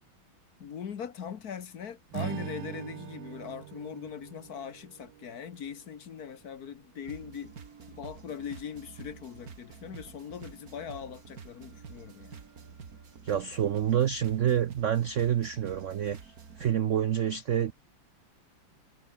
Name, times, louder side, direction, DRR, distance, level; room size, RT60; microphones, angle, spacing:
voice 1, 0.6-7.5 7.9-12.4, left 7 dB, 50° left, 1.6 m, -41 dB
Strum, 2.1-6.5, right 16 dB, 75° right, 1.1 m, -42 dB
sound 1, 7.0-16.7, right 6 dB, 45° right, 2.2 m, -49 dB
voice 2, 13.2-17.7, right 10 dB, 90° right, 0.6 m, -28 dB
omnidirectional pair, 2.2 m